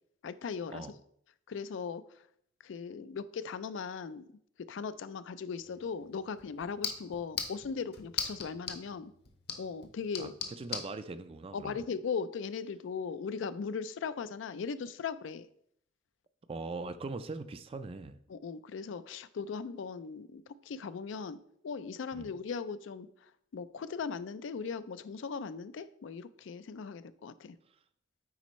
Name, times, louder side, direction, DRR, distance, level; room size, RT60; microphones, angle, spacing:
voice 1, 0.2-0.9 1.5-2.0 2.6-4.2 4.6-9.1 9.6-10.3 11.5-15.5 18.3-21.4 21.6-27.6, left 5 dB, 75° left, 14 dB, 0.4 m, -38 dB
sound 1, 5.6-10.9, left 6 dB, 55° left, 0.9 m, -41 dB
voice 2, 10.2-11.8 16.5-18.2 22.1-22.3, right 3 dB, 30° right, 11 dB, 0.4 m, -41 dB
9.5 x 4.2 x 3.1 m, 0.70 s
head